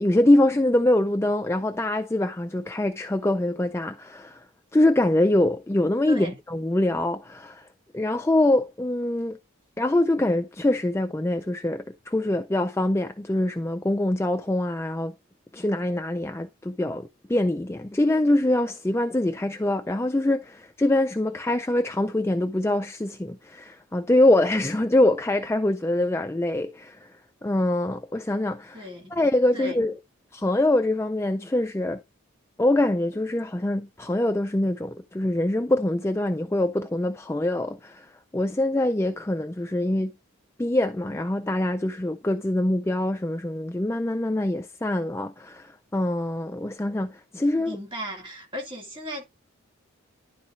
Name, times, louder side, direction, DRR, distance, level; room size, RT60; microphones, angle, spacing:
voice 1, 0.0-7.7 7.9-9.4 9.8-15.1 15.5-27.1 27.4-29.9 30.3-32.0 32.6-40.1 40.6-47.8, left 1 dB, 10° left, 0.3 m, -24 dB
voice 2, 6.1-6.4 28.7-29.2 29.5-29.8 47.7-49.2, equal, 25° right, 2.3 m, -35 dB
11.5 x 4.1 x 3.6 m
head